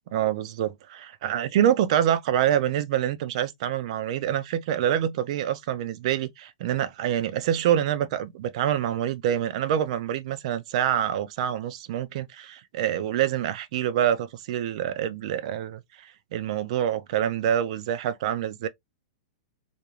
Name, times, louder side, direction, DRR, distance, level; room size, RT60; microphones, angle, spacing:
voice 1, 0.1-18.7, right 10 dB, 55° right, 0.5 m, -26 dB
2.5 x 2.2 x 3.0 m
hypercardioid pair, 115°, 4 cm